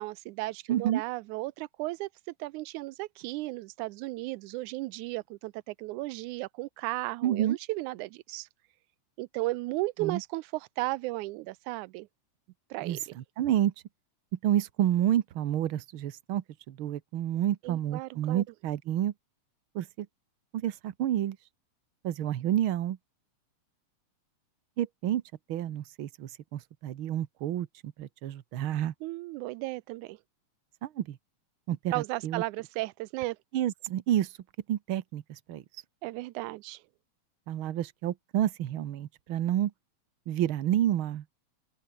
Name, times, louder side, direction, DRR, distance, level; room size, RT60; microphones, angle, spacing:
voice 1, 0.0-2.1 2.4-8.5 9.2-12.1 12.7-13.1 17.6-18.4 29.0-30.2 31.9-33.4 36.0-36.8, right 20 dB, 90° right, 2.1 m, -35 dB
voice 2, 0.7-1.0 7.2-7.6 10.0-10.2 12.8-13.7 14.4-19.1 19.7-20.1 20.5-21.4 22.0-23.0 24.8-25.2 25.5-28.9 30.8-31.2 31.7-32.4 33.5-34.3 34.7-35.6 37.5-39.7 40.3-41.2, right 12 dB, 60° right, 1.5 m, -29 dB
open air
omnidirectional pair, 3.4 m